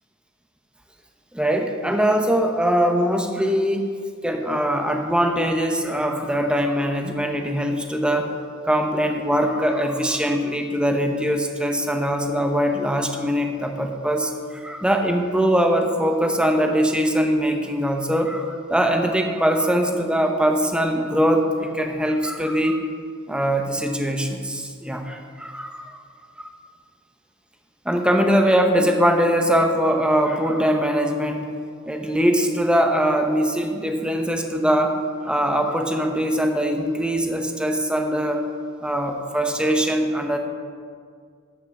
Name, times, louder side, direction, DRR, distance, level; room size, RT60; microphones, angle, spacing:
voice 1, 1.3-3.9 4.2-8.3 8.6-22.8 23.3-26.0 26.4-26.5 27.8-31.5 31.9-35.0 35.2-38.4 38.8-40.4, equal, 5° right, 4 dB, 0.8 m, -22 dB
11.0 x 5.6 x 6.9 m, 2.1 s
head